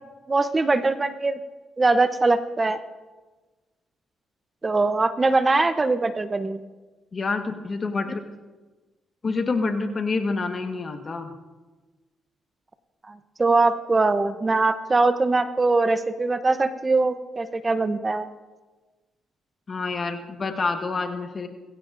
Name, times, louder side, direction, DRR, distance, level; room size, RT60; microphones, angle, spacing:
voice 1, 0.3-1.4 1.8-2.8 4.6-6.6 13.1-18.3, right 3 dB, 25° right, 11 dB, 0.7 m, -22 dB
voice 2, 7.1-8.2 9.2-11.3 19.7-21.5, left 4 dB, 40° left, 6 dB, 1.3 m, -27 dB
21.5 x 15.5 x 2.6 m, 1.3 s
cardioid pair, 80°, 0 cm